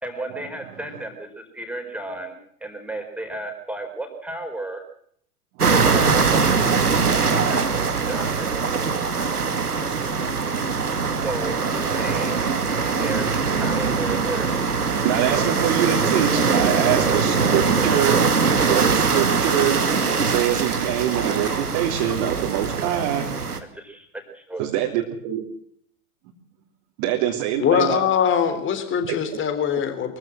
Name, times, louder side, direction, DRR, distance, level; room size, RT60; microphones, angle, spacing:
voice 1, 0.0-2.4 2.6-4.8 5.7-6.9 7.4-8.6 11.2-11.6 11.9-12.5 13.0-14.6 23.7-24.1 24.3-24.7, right 2 dB, 5° right, 4 dB, 4.6 m, -33 dB
sound 1, 5.6-23.6, right 5 dB, 85° right, 2.5 m, -22 dB
voice 2, 9.3-11.3 11.9-12.6 13.1-13.2 14.1-14.3 14.8-19.8 20.2-23.3 24.6-25.4 27.0-28.0, right 11 dB, 45° right, 0 dB, 3.4 m, -26 dB
voice 3, 27.6-30.2, left 8 dB, 25° left, 10 dB, 3.6 m, -22 dB
23.5 x 15.5 x 7.7 m, 0.65 s
figure-of-eight pair, 100°, 45 cm